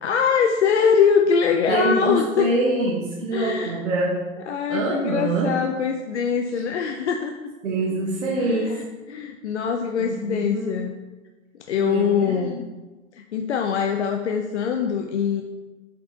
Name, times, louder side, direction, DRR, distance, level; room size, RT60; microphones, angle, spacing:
voice 1, 0.0-2.5 3.3-3.8 4.5-7.5 8.4-10.9 11.7-12.6 13.2-15.4, left 6 dB, 55° left, 4 dB, 0.5 m, -23 dB
voice 2, 1.7-4.3 4.7-5.6 6.5-6.6 7.6-8.8 10.0-10.8 11.8-12.6, right 2 dB, 60° right, -2 dB, 1.2 m, -25 dB
8.2 x 4.5 x 2.8 m, 1.2 s
hypercardioid pair, 175°, 42 cm